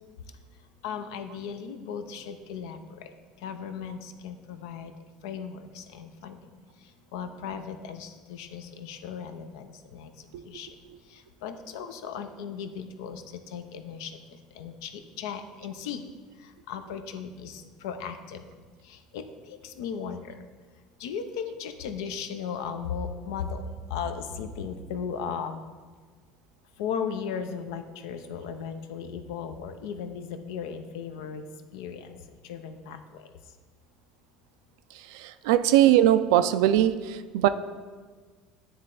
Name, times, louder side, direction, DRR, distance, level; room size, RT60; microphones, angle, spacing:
voice 1, 0.8-4.9 5.2-10.8 11.1-16.0 16.3-18.4 18.8-20.4 21.0-25.6 26.8-31.4 31.7-33.3, left 7 dB, 80° left, 8 dB, 0.5 m, -37 dB
voice 2, 35.1-37.5, right 12 dB, 80° right, 12 dB, 0.3 m, -21 dB
9.6 x 3.2 x 3.8 m, 1.5 s
supercardioid pair, 90°, 2 cm